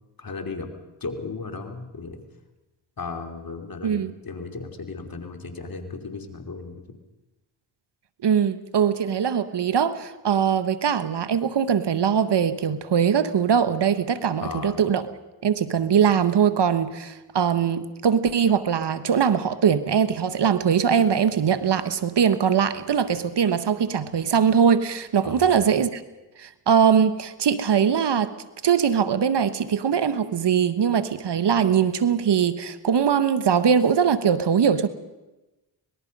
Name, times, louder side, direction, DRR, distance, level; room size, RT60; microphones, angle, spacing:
voice 1, 0.2-0.7 1.0-2.2 3.0-6.8 14.4-14.8 25.2-25.6, left 4 dB, 45° left, 5 dB, 3.1 m, -35 dB
voice 2, 8.2-15.0 15.4-26.0 26.4-28.3 28.6-34.9, right 7 dB, 60° right, 13 dB, 1.3 m, -21 dB
25.0 x 19.5 x 5.4 m, 1.1 s
cardioid pair, 55°, 47 cm